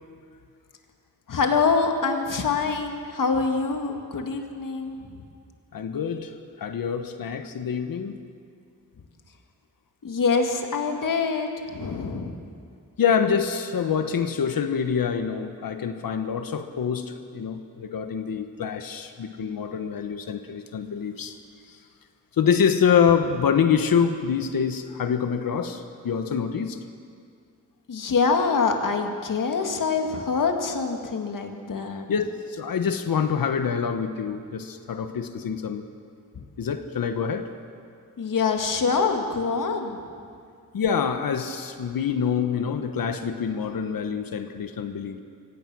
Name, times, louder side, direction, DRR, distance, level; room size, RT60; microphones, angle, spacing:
voice 1, 1.3-5.0 10.0-12.4 27.9-32.0 38.2-40.0, left 4 dB, 70° left, 4 dB, 2.0 m, -25 dB
voice 2, 5.7-8.2 13.0-21.4 21.7-21.8 22.3-26.8 32.1-35.8 36.6-37.5 40.7-45.2, left 7 dB, 90° left, 8 dB, 1.2 m, -26 dB
24.5 x 17.0 x 6.2 m, 2.2 s
wide cardioid pair, 145°, 34 cm